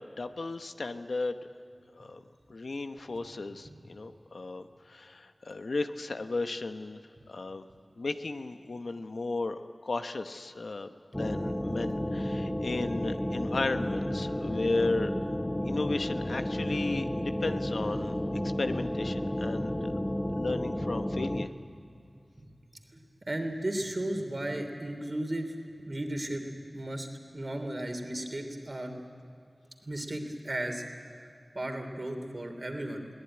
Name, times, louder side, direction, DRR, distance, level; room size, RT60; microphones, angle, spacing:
voice 1, 0.0-1.4 2.0-2.2 2.5-7.0 7.3-7.6 8.0-15.1 15.7-18.1 18.6-19.9 20.4-21.5, left 3 dB, 85° left, 8 dB, 0.9 m, -34 dB
sound 1, 11.1-21.5, left 1 dB, 20° left, 1.0 m, -32 dB
voice 2, 23.2-25.5 25.9-26.4 26.7-27.1 27.3-28.9 29.9-30.8 31.5-33.1, right 1 dB, 45° right, 5 dB, 3.0 m, -34 dB
21.5 x 18.0 x 9.8 m, 2.5 s
wide cardioid pair, 50°, 0 cm